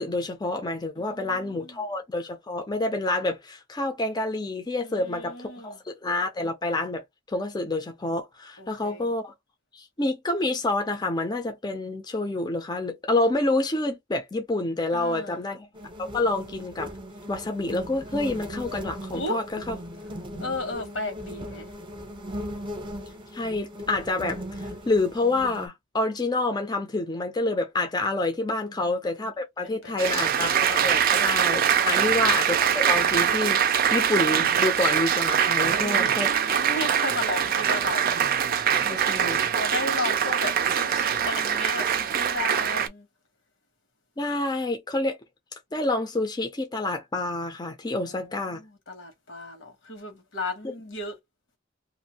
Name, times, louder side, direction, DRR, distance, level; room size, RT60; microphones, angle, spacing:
voice 1, 0.0-7.0 7.3-9.3 9.7-15.7 16.0-16.9 17.3-19.8 20.3-20.4 23.3-36.6 38.8-39.5 44.2-45.2 45.7-48.6, left 2 dB, 20° left, 0.6 m, -28 dB
voice 2, 1.0-1.8 4.8-5.8 8.6-9.1 14.9-15.5 19.1-19.4 20.4-21.7 28.7-28.9 29.6-30.3 35.6-38.2 39.5-43.1 47.9-51.2, left 2 dB, 80° left, 1.3 m, -35 dB
sound 1, 15.7-25.7, equal, 25° right, 0.7 m, -38 dB
Applause, 30.0-42.9, right 8 dB, 50° right, 0.4 m, -23 dB
2.6 x 2.5 x 2.8 m
head